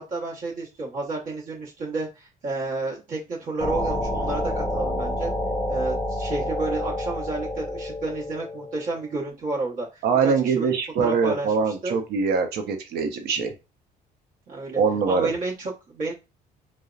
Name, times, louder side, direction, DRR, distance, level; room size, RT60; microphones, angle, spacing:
voice 1, 0.0-5.3 5.7-10.7 11.0-12.0 14.5-14.8 15.1-16.1, right 3 dB, 50° right, -4 dB, 1.0 m, -31 dB
sound 1, 3.6-9.0, left 1 dB, 20° left, 0.6 m, -28 dB
voice 2, 10.0-13.5 14.7-15.3, right 5 dB, 70° right, 6 dB, 0.6 m, -23 dB
2.7 x 2.0 x 2.3 m, 0.27 s
cardioid pair, 110°, 17 cm